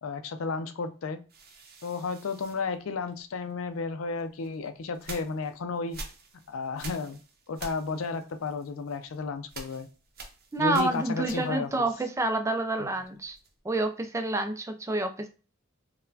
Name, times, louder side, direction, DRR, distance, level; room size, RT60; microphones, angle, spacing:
voice 1, 0.0-1.2 1.8-6.0 6.5-7.2 7.5-9.9 10.6-11.9 12.8-12.9, left 4 dB, 75° left, 9 dB, 0.4 m, -33 dB
sound 1, 1.3-3.5 4.2-11.8 12.1-13.7, right 3 dB, 50° right, 0.6 m, -47 dB
voice 2, 10.5-13.4 13.6-15.3, right 2 dB, 15° right, 6 dB, 0.3 m, -28 dB
4.0 x 2.1 x 2.7 m, 0.35 s
head